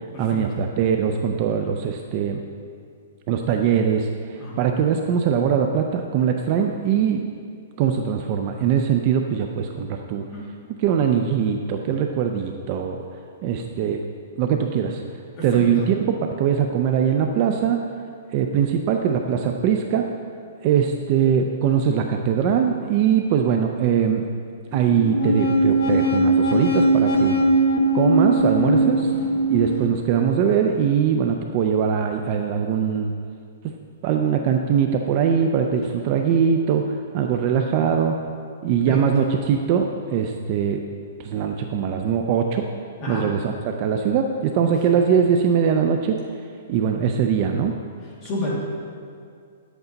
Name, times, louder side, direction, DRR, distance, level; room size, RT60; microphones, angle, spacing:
voice 1, 0.2-2.4 3.3-7.2 7.8-10.2 10.8-13.0 13.4-14.0 14.4-15.0 15.4-17.8 18.3-20.1 20.6-24.3 24.7-27.4 27.9-29.1 29.5-33.1 33.6-33.7 34.0-38.2 38.6-40.8 41.2-42.7 43.1-46.2 46.7-47.7, right 7 dB, 25° right, 4 dB, 0.4 m, -21 dB
voice 2, 15.4-15.9 28.8-29.0 38.9-39.0 43.0-43.2 44.7-44.8 48.2-48.6, left 2 dB, 20° left, -5 dB, 1.8 m, -30 dB
sound 1, 24.7-29.9, right 2 dB, 55° left, 1.5 m, -20 dB
9.7 x 8.0 x 3.9 m, 2.3 s
hypercardioid pair, 180°, 0 cm